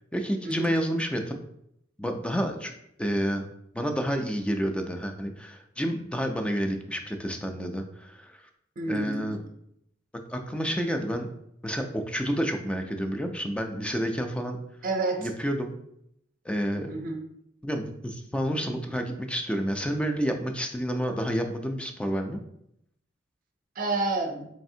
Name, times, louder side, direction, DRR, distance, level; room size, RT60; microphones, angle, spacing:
voice 1, 0.1-1.4 2.0-2.7 3.0-3.5 3.7-8.4 8.9-9.4 10.3-11.3 11.6-14.6 15.2-15.7 16.5-16.9 17.6-22.4, equal, 5° left, 5 dB, 0.3 m, -29 dB
voice 2, 8.8-9.3 14.8-15.3 16.9-17.2 23.8-24.5, right 3 dB, 45° right, 4 dB, 0.5 m, -29 dB
4.1 x 3.3 x 2.7 m, 0.75 s
head